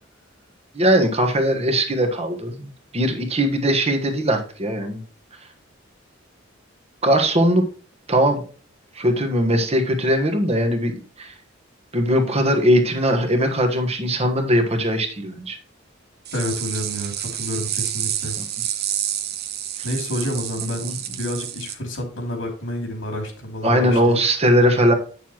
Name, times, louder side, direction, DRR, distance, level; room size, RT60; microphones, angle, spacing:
voice 1, 0.7-5.0 7.0-7.6 8.1-8.4 8.9-11.3 11.9-15.6 20.6-20.9 23.6-24.9, equal, 35° right, 4 dB, 1.3 m, -20 dB
sound 1, 16.2-21.7, right 11 dB, 55° right, 0.9 m, -29 dB
voice 2, 16.3-18.4 19.8-20.9 21.2-24.2, left 1 dB, 75° left, 3 dB, 2.8 m, -29 dB
9.1 x 6.8 x 3.0 m, 0.40 s
head